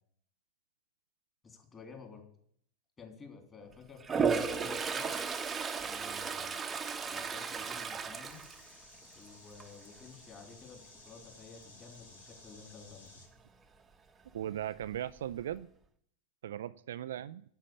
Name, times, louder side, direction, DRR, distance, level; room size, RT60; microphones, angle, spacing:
voice 1, 1.4-2.2 3.0-5.1 5.8-6.6 7.1-8.4 9.1-13.2, left 5 dB, 20° left, 2 dB, 3.3 m, -52 dB
Toilet flush, 4.0-9.2 9.6-10.0 14.4-14.5 14.8-15.5, right 5 dB, 15° right, 1.0 m, -34 dB
sound 1, 8.3-13.3, left 2 dB, 75° left, 3.7 m, -56 dB
voice 2, 14.3-15.7 16.4-17.4, right 11 dB, 60° right, 14 dB, 0.4 m, -38 dB
8.9 x 7.5 x 8.5 m, 0.67 s
figure-of-eight pair, 90°, 0 cm